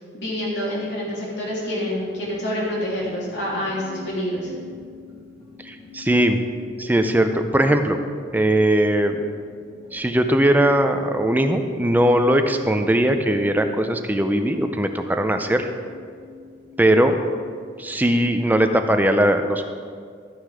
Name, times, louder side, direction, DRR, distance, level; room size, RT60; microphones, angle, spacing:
voice 1, 0.1-4.5, equal, 65° left, -5 dB, 3.0 m, -27 dB
sound 1, 1.6-18.0, left 4 dB, 35° left, 2.6 m, -45 dB
voice 2, 5.6-6.4 6.8-8.0 8.3-9.2 9.9-15.7 16.8-17.2 17.8-19.6, right 1 dB, 10° right, 7 dB, 0.5 m, -19 dB
13.0 x 6.4 x 4.9 m, 2.1 s
head